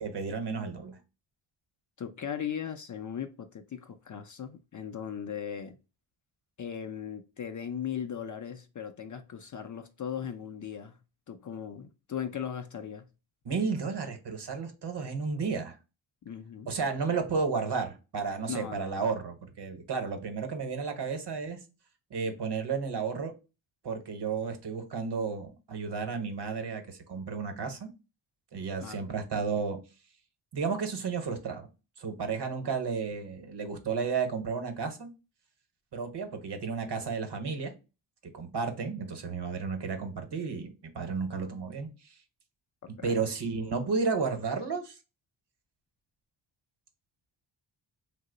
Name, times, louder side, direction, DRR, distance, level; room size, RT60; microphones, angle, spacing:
voice 1, 0.0-1.0 13.4-15.7 16.7-21.6 22.1-23.3 23.8-27.9 28.5-29.8 30.5-31.7 32.0-35.1 35.9-37.7 38.3-41.9 43.0-44.9, right 5 dB, 55° right, 0.9 m, -32 dB
voice 2, 2.0-5.8 6.6-11.0 11.3-13.1 16.2-16.7 18.5-19.1 28.8-29.0 43.0-43.2, left 8 dB, 40° left, 0.4 m, -38 dB
2.8 x 2.0 x 3.8 m
cardioid pair, 65°, 49 cm